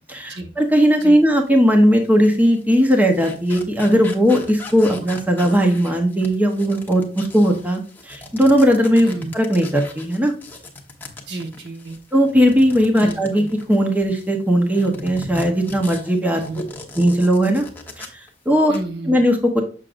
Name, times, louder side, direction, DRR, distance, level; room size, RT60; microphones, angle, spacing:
voice 1, 0.1-9.1 9.3-10.3 12.1-16.4 17.0-17.7 18.0-18.7 19.1-19.6, equal, 10° right, 3 dB, 0.9 m, -17 dB
sound 1, 1.3-1.5 2.0-14.3 14.7-18.3 18.6-18.8, left 2 dB, 10° left, 1.1 m, -38 dB
voice 2, 9.0-9.3 11.3-12.0 12.9-13.5 16.4-16.6 18.7-19.2, right 2 dB, 65° right, 4 dB, 1.3 m, -31 dB
7.3 x 6.5 x 2.5 m, 0.37 s
head